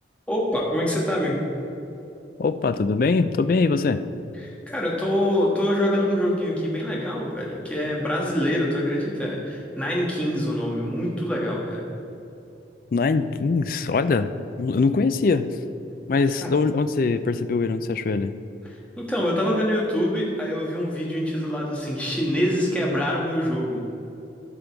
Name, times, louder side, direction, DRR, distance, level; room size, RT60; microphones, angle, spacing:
voice 1, 0.3-1.4 4.4-11.9 16.4-16.5 18.6-23.8, equal, 5° left, -4 dB, 1.4 m, -25 dB
voice 2, 2.4-4.0 12.9-14.3 14.6-15.6 16.1-18.3, left 4 dB, 50° left, 11 dB, 0.3 m, -22 dB
13.0 x 5.3 x 4.6 m, 2.8 s
head